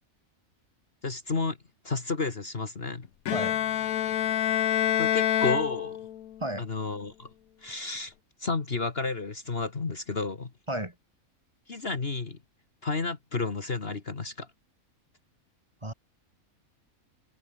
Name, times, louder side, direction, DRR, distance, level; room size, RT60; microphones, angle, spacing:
voice 1, 1.0-1.6 1.8-3.1 5.0-6.0 6.6-7.3 7.6-8.1 8.4-10.5 11.7-12.4 12.8-14.5, left 3 dB, 45° left, 1.9 m, -31 dB
Bowed string instrument, 3.3-6.4, left 11 dB, 75° left, 1.3 m, -27 dB
voice 2, 3.3-3.6 6.4-6.7 7.9-8.0 10.7-10.9 15.8-15.9, right 1 dB, 20° right, 2.8 m, -33 dB
omnidirectional pair, 1.5 m